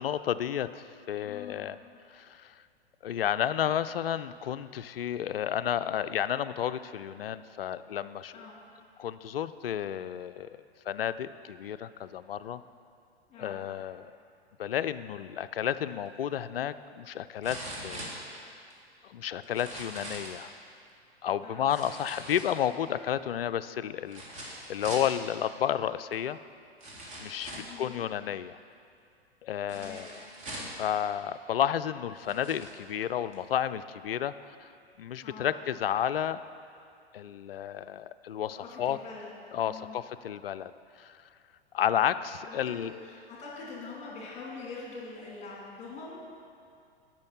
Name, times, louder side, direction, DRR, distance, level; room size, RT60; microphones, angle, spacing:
voice 1, 0.0-1.8 2.1-2.5 3.0-8.3 9.0-10.5 10.9-12.6 13.4-14.1 14.6-18.1 18.4-18.5 19.0-20.5 21.2-26.4 27.2-28.6 29.4-30.1 30.5-34.7 35.0-36.4 37.1-39.0 39.5-40.7 41.0-41.2 41.7-42.9, left 10 dB, 65° left, 13 dB, 0.5 m, -32 dB
voice 2, 1.2-1.7 8.3-8.6 13.3-13.6 21.4-21.7 27.5-28.1 29.7-30.0 35.2-35.5 38.6-39.3 39.6-39.9 42.4-42.6 43.0-46.2, left 4 dB, 20° left, -4 dB, 3.1 m, -44 dB
sound 1, 16.1-16.2 17.4-18.7 19.4-20.4 21.7-22.9 24.1-25.1 26.1-26.2 26.8-27.8 29.7-30.8 31.6-31.7 32.2-32.7 33.3-33.4, right 1 dB, 20° right, 2.1 m, -42 dB
10.5 x 6.1 x 7.3 m, 2.4 s
figure-of-eight pair, 105°, 32 cm